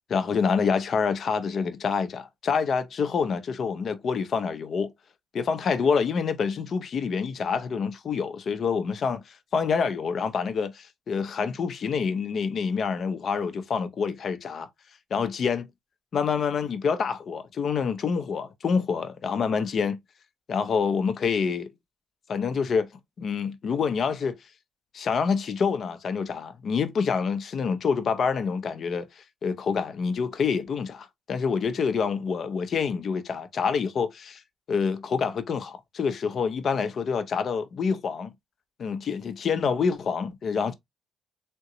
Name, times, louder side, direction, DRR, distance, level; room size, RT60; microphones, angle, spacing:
voice 1, 0.1-4.9 5.3-14.7 15.1-15.7 16.1-20.0 20.5-21.7 22.3-22.9 23.2-24.4 24.9-29.1 29.4-34.4 34.7-38.3 38.8-40.7, left 5 dB, 55° left, 0.6 m, -27 dB
3.7 x 2.2 x 2.9 m
cardioid pair, 90°, 0 cm